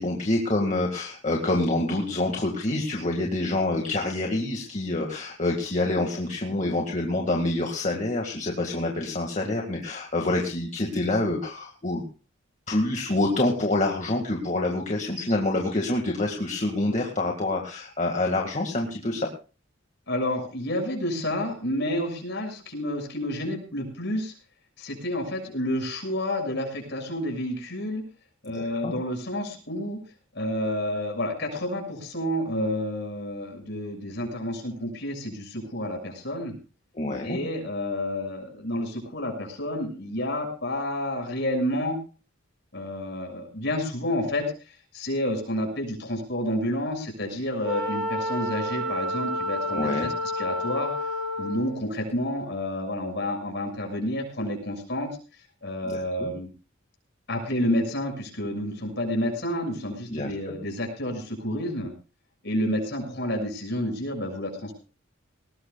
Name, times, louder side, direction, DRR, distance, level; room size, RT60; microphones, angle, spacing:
voice 1, 0.0-12.0 12.7-19.3 28.5-28.9 37.0-37.4 49.7-50.1 55.8-56.3 60.1-60.5, left 2 dB, 35° left, 1 dB, 1.9 m, -27 dB
voice 2, 20.1-24.3 24.8-28.0 28.4-30.0 30.3-36.5 37.2-42.0 42.7-50.9 51.4-55.1 55.6-56.5 57.3-61.9 62.4-64.8, left 1 dB, 60° left, 2 dB, 6.7 m, -30 dB
Wind instrument woodwind instrument, 47.6-51.8, left 1 dB, ahead, 7.1 m, -30 dB
20.0 x 19.0 x 2.3 m, 0.35 s
head